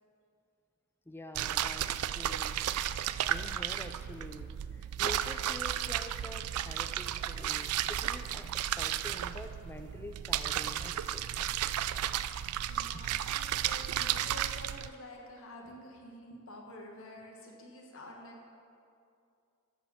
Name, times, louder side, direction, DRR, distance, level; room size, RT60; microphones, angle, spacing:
voice 1, 1.1-2.6 3.2-11.6 12.9-13.1, left 1 dB, 10° left, 6 dB, 0.4 m, -47 dB
sound 1, 1.3-14.9, right 11 dB, 85° right, 0.3 m, -33 dB
voice 2, 12.7-18.5, left 1 dB, 65° left, -1 dB, 1.5 m, -49 dB
13.0 x 5.0 x 7.2 m, 2.4 s
head